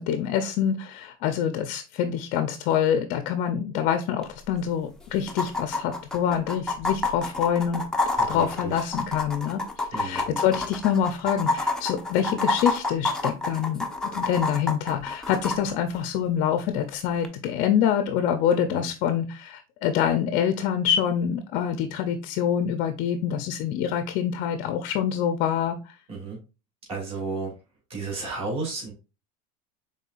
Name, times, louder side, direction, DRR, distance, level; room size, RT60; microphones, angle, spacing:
voice 1, 0.0-7.8 8.3-25.9, left 9 dB, 50° left, 8 dB, 0.6 m, -26 dB
sound 1, 4.2-4.3 4.5-4.6 5.3-15.6 17.2-17.3, left 2 dB, 5° left, 0.6 m, -28 dB
voice 2, 8.3-8.9 9.9-10.2 18.7-18.8 26.1-26.4 26.9-27.5 27.9-28.9, right 3 dB, 30° right, -2 dB, 2.6 m, -33 dB
5.4 x 3.7 x 2.4 m, 0.30 s
supercardioid pair, 140°, 19 cm